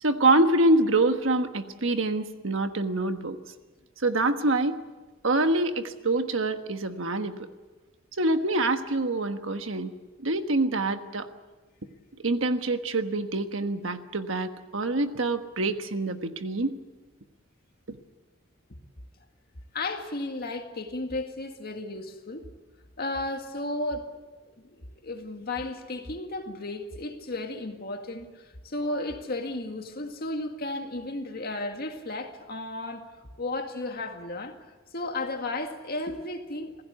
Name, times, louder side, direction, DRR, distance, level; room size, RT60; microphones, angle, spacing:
voice 1, 0.0-3.4 4.0-4.8 5.2-7.3 8.2-9.9 10.2-11.3 12.2-16.7 17.9-18.0, right 2 dB, 75° right, 1.3 m, -25 dB
voice 2, 19.7-22.5 23.0-24.1 24.5-33.1 33.4-34.5 34.9-36.8, left 2 dB, 50° left, 2.0 m, -34 dB
26.5 x 16.0 x 8.2 m
head